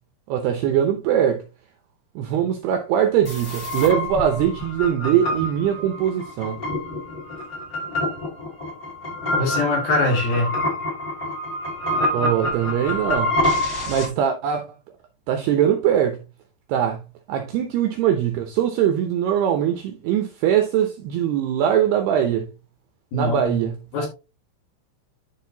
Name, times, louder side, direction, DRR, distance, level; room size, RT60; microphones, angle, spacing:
voice 1, 0.3-1.4 2.2-6.6 12.1-13.4 13.9-14.7 15.3-16.2 16.7-17.0 17.3-22.5 23.1-23.8, right 9 dB, 80° right, 2.4 m, -21 dB
sound 1, 3.2-14.1, left 1 dB, 25° left, 2.0 m, -27 dB
voice 2, 9.4-10.5 23.1-23.6 23.9-24.1, left 2 dB, 55° left, 3.5 m, -22 dB
11.5 x 4.6 x 2.8 m
omnidirectional pair, 5.5 m